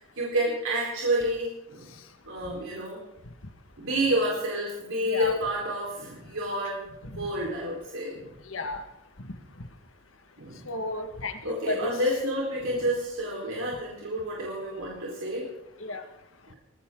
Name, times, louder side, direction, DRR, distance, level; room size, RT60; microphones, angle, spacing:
voice 1, 0.2-1.9 2.3-3.0 3.8-8.3 10.4-10.6 11.4-15.4, equal, 90° right, -4 dB, 4.5 m, -29 dB
voice 2, 8.5-8.8 10.7-11.9 15.8-16.0, left 2 dB, 80° left, 7 dB, 1.8 m, -33 dB
20.0 x 17.0 x 3.9 m, 0.87 s
head